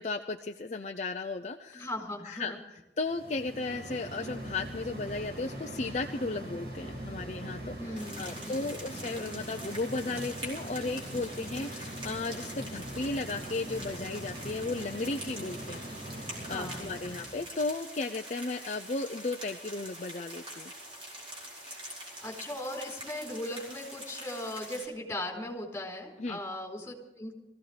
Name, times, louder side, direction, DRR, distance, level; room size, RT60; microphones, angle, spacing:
voice 1, 0.0-1.9 2.2-15.8 16.5-20.7 26.2-26.4, left 3 dB, 40° left, 4 dB, 0.6 m, -35 dB
voice 2, 1.7-2.6 7.8-8.8 16.4-17.1 22.2-27.3, left 1 dB, 10° left, 0 dB, 4.2 m, -38 dB
sound 1, 3.0-17.6, right 1 dB, 65° right, 4.8 m, -42 dB
sound 2, 8.0-24.9, equal, 30° right, 4.7 m, -45 dB
23.5 x 16.0 x 3.4 m, 1.0 s
head